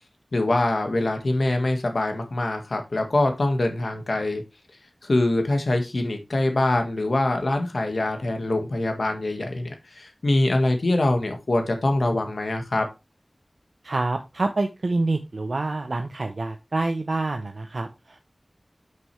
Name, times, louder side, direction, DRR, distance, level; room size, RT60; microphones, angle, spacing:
voice 1, 0.3-4.4 5.0-12.9, left 2 dB, 80° left, 5 dB, 1.6 m, -24 dB
voice 2, 13.8-18.2, right 2 dB, 80° right, 5 dB, 0.7 m, -27 dB
7.6 x 6.0 x 3.2 m, 0.24 s
wide cardioid pair, 50°, 0 cm